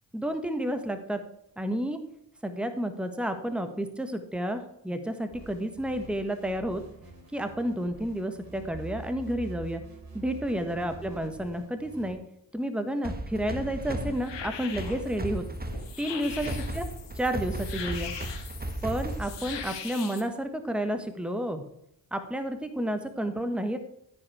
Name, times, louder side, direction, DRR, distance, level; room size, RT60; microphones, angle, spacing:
voice 1, 0.1-1.2 1.6-2.0 2.4-6.8 7.3-9.8 10.1-12.2 12.5-15.4 16.0-16.8 17.2-18.1 18.8-21.6 22.1-23.8, right 1 dB, ahead, 8 dB, 1.4 m, -31 dB
sound 1, 5.3-12.2, right 3 dB, 50° right, 4.1 m, -45 dB
sound 2, 13.0-19.8, right 1 dB, 20° right, 1.4 m, -36 dB
sound 3, 13.3-20.2, left 7 dB, 75° left, 1.8 m, -41 dB
13.5 x 4.9 x 4.8 m, 0.79 s
supercardioid pair, 45°, 44 cm